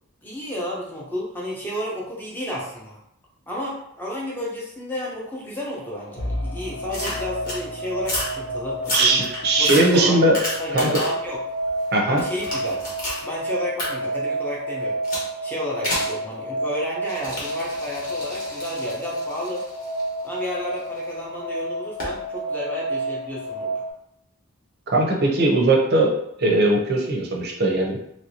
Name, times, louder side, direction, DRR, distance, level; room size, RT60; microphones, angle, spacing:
voice 1, 0.2-3.0 3.5-9.2 9.6-10.3 10.6-11.4 12.1-12.9 13.2-15.0 15.4-19.6 20.2-23.8, left 1 dB, 10° left, -4 dB, 0.7 m, -32 dB
sound 1, 5.8-23.9, right 1 dB, 85° left, 1.5 m, -30 dB
Bowed string instrument, 6.2-11.3, left 1 dB, 65° left, 0.8 m, -36 dB
sound 2, 6.9-7.6 8.0-8.4 8.8-11.3 11.7-13.2 13.8-13.9 15.0-15.3 15.8-16.2 17.0-21.0 22.0-22.2, left 1 dB, 40° left, 1.0 m, -30 dB
voice 2, 8.9-10.4 10.7-11.0 11.9-12.2 24.9-28.0, right 2 dB, 45° right, 0 dB, 0.6 m, -19 dB
3.1 x 2.6 x 2.7 m, 0.76 s
head